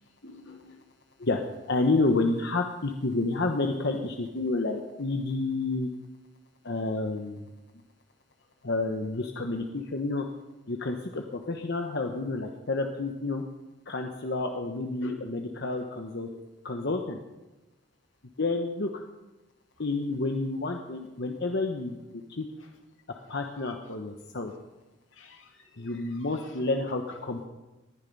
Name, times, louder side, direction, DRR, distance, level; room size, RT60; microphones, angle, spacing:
voice 1, 0.2-0.8 15.0-15.2 15.8-15.9 16.3-16.4 25.1-26.5, left 3 dB, 90° left, 3 dB, 2.3 m, -47 dB
voice 2, 1.7-5.9 6.6-7.4 8.6-10.2 10.7-13.4 13.9-16.3 16.6-17.2 18.4-18.9 19.8-22.0 22.4-22.5 23.3-24.5 25.8-27.5, left 2 dB, 65° left, 4 dB, 1.1 m, -29 dB
19.5 x 10.5 x 5.5 m, 1.1 s
head